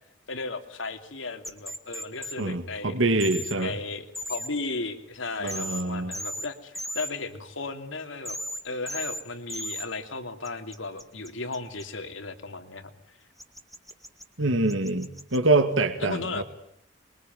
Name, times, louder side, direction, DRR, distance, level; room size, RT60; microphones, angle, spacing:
voice 1, 0.3-2.9 3.5-8.4 8.6-13.2 14.4-15.0 16.0-16.4, left 3 dB, 70° left, 8 dB, 2.9 m, -35 dB
sound 1, 1.4-2.3 3.2-3.5 4.1-4.5 5.5-5.8 6.1-6.5 6.7-7.1 8.2-8.6 8.9-9.2 9.5-9.8 10.4-11.8 13.4-14.2 14.7-15.4, equal, ahead, 1.8 m, -35 dB
voice 2, 2.4-3.7 5.4-6.1 14.4-16.4, right 2 dB, 70° right, 8 dB, 2.1 m, -25 dB
27.5 x 22.5 x 9.4 m, 0.71 s
head